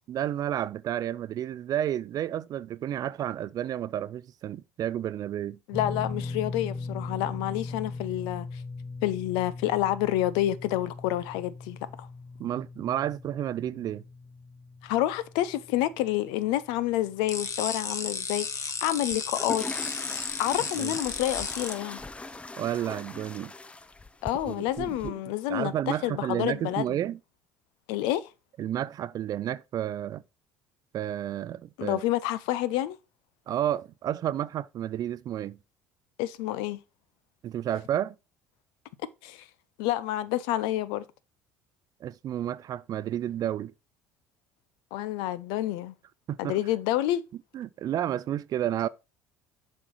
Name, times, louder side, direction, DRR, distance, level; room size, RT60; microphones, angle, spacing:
voice 1, 0.1-5.6 12.4-14.0 20.8-21.0 22.6-23.5 24.5-27.2 28.6-30.2 30.9-32.0 33.5-35.6 37.4-38.2 42.0-43.7 46.3-46.6 47.5-48.9, right 11 dB, 50° right, 0.5 m, -31 dB
voice 2, 5.7-8.5 9.0-12.1 14.8-19.6 20.4-22.0 24.2-27.0 27.9-28.3 31.8-33.0 36.2-36.8 39.2-39.4 39.8-41.0 44.9-45.9 46.4-47.2, left 14 dB, 70° left, 0.6 m, -28 dB
sound 1, 5.7-18.0 18.2-18.5 20.1-20.2, left 3 dB, 5° right, 1.8 m, -40 dB
sound 2, 17.3-21.7, left 5 dB, 40° left, 1.2 m, -33 dB
sound 3, 19.1-25.1, left 2 dB, 15° left, 0.5 m, -41 dB
7.4 x 4.4 x 4.7 m
hypercardioid pair, 70°, 8 cm